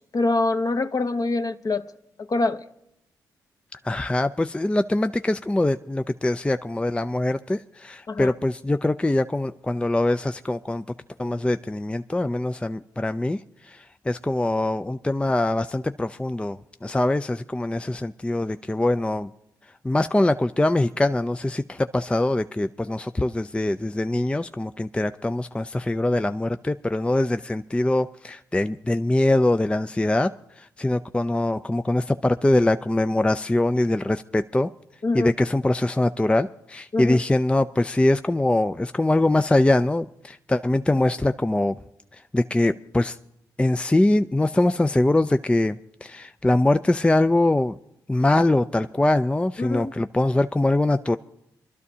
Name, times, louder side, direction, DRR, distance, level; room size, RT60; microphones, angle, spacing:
voice 1, 0.0-1.9 2.2-2.7 8.1-8.3 35.0-35.3 36.9-37.2 49.6-49.9, left 2 dB, 45° left, 0.9 m, -25 dB
voice 2, 3.7-10.8 11.2-19.3 19.8-34.7 35.1-41.8 42.1-43.2 43.6-47.8 48.1-51.2, left 2 dB, 10° left, 0.4 m, -23 dB
24.5 x 12.0 x 2.8 m
supercardioid pair, 45°, 9 cm